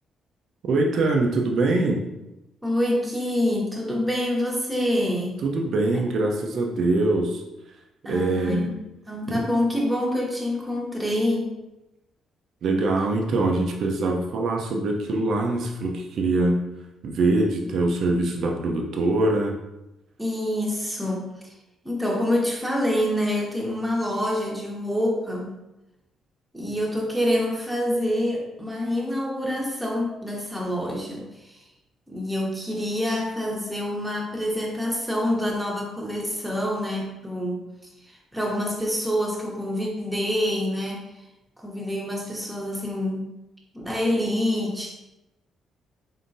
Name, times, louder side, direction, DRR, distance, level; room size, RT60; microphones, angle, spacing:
voice 1, 0.6-2.0 5.4-7.4 8.1-8.7 9.3-9.4 12.6-16.6 17.0-19.5, right 2 dB, 65° right, 1 dB, 0.6 m, -23 dB
voice 2, 2.6-5.4 8.0-8.7 9.1-11.6 20.2-21.5 21.8-25.6 26.5-31.6 32.1-41.0 41.6-43.3 43.7-44.9, left 1 dB, 5° right, -3 dB, 1.1 m, -26 dB
3.7 x 3.6 x 2.6 m, 0.94 s
cardioid pair, 90°, 0 cm